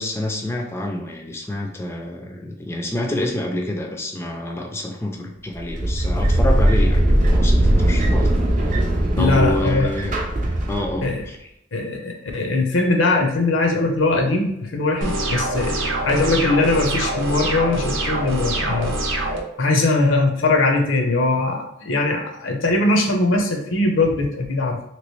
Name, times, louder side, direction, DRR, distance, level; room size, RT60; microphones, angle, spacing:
voice 1, 0.0-8.3 9.2-10.2 10.7-11.5, left 1 dB, 15° left, 1 dB, 0.4 m, -27 dB
sound 1, 5.6-11.2, right 1 dB, 40° right, 0.6 m, -19 dB
voice 2, 9.2-9.9 11.0-11.2 11.7-15.8 16.1-19.0 19.6-24.8, left 2 dB, 80° left, 3 dB, 0.7 m, -20 dB
sound 2, 15.0-19.4, right 1 dB, 80° right, 0.7 m, -24 dB
3.0 x 3.0 x 3.1 m, 0.78 s
head